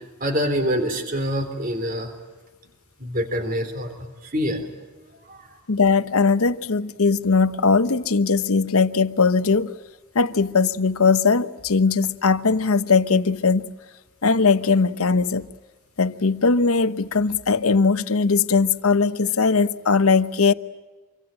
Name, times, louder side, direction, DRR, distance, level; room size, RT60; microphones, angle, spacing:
voice 1, 0.0-2.1 3.0-4.6 5.2-5.5, equal, 40° right, 3.6 m, -26 dB
voice 2, 5.7-9.7 10.1-13.7 14.2-15.5 16.0-20.5, left 4 dB, 90° left, 1.0 m, -19 dB
26.0 x 24.5 x 9.0 m
head